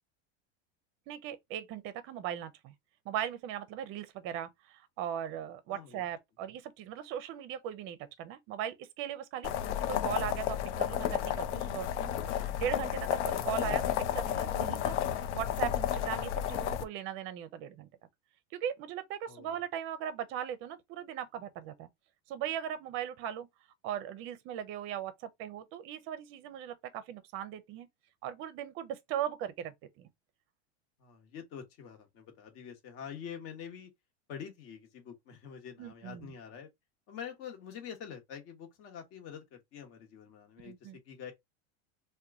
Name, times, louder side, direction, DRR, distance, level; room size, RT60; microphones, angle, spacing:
voice 1, 1.1-2.7 3.1-9.5 9.9-13.8 14.1-15.0 15.3-17.9 18.5-21.9 22.3-23.5 23.8-27.9 28.2-30.1 35.8-36.3 40.6-41.0, right 10 dB, 40° right, 0.6 m, -38 dB
voice 2, 5.7-6.0 13.6-13.8 19.3-19.5 31.0-33.9 34.3-36.7 37.1-41.3, left 8 dB, 40° left, 1.1 m, -46 dB
sound 1, 9.4-16.8, left 10 dB, 90° left, 0.6 m, -32 dB
2.9 x 2.2 x 3.5 m
supercardioid pair, 150°, 34 cm